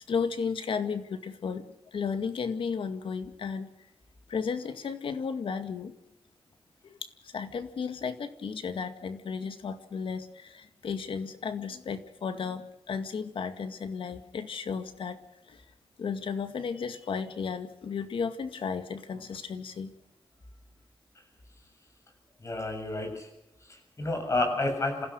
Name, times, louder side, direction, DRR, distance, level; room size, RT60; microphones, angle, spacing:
voice 1, 0.0-1.6 1.9-3.7 4.3-5.9 6.8-15.2 15.5-15.6 16.0-19.9, left 6 dB, 70° left, 9 dB, 2.1 m, -34 dB
voice 2, 22.4-23.3 23.7-25.1, left 2 dB, 35° left, 5 dB, 7.3 m, -30 dB
27.5 x 16.0 x 6.5 m, 0.87 s
wide cardioid pair, 110°, 9 cm